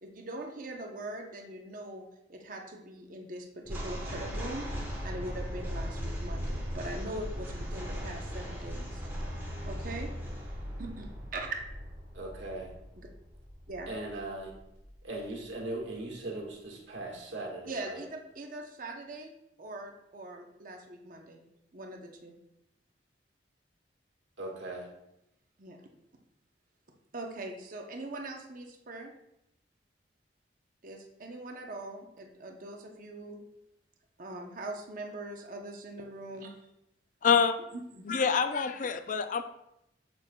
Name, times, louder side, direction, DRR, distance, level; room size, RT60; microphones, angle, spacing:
voice 1, 0.0-4.7 5.0-9.0 9.7-10.1 10.8-11.6 13.7-13.9 17.7-19.3 19.6-21.4 21.7-22.3 25.6-25.8 27.1-29.1 30.8-33.4 34.2-36.5 37.7-38.0, right 2 dB, 50° right, 2 dB, 0.7 m, -41 dB
sound 1, 3.6-14.9, equal, 10° right, 1.3 m, -38 dB
voice 2, 12.1-12.7 13.9-14.5 15.0-18.0 24.4-24.9, right 2 dB, 90° right, -1 dB, 1.6 m, -39 dB
voice 3, 37.2-37.5 38.1-39.4, left 6 dB, 45° left, 9 dB, 0.4 m, -26 dB
6.8 x 6.5 x 2.2 m, 0.84 s
head